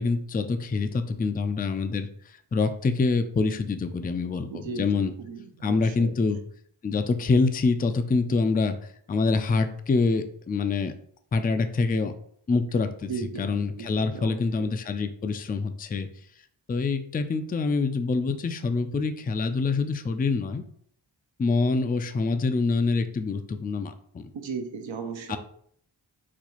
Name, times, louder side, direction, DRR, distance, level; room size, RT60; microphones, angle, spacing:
voice 1, 0.0-5.1 5.6-6.4 6.8-8.8 9.1-10.9 11.3-12.1 12.5-13.1 13.4-16.1 16.7-20.6 21.4-24.3 25.3-25.4, left 4 dB, 20° left, 9 dB, 0.3 m, -26 dB
voice 2, 4.5-6.1 13.1-14.7 24.3-25.4, right 5 dB, 80° right, 5 dB, 0.7 m, -36 dB
4.0 x 2.3 x 3.0 m, 0.63 s
cardioid pair, 40°, 45 cm